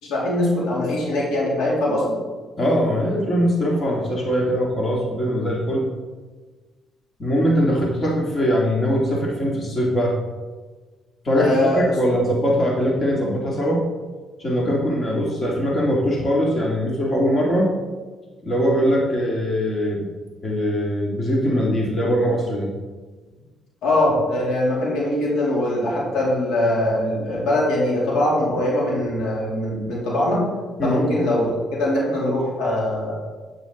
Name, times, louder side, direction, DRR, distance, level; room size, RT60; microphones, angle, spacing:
voice 1, 0.0-2.1 11.4-11.8 23.8-30.4 30.8-33.1, left 1 dB, 80° left, -4 dB, 3.2 m, -22 dB
voice 2, 2.6-5.9 7.2-10.2 11.2-13.9 14.4-17.7 18.4-20.1 20.4-22.7 30.8-31.1, equal, 35° left, -2 dB, 2.8 m, -21 dB
9.2 x 8.9 x 4.0 m, 1.3 s
supercardioid pair, 70°, 0 cm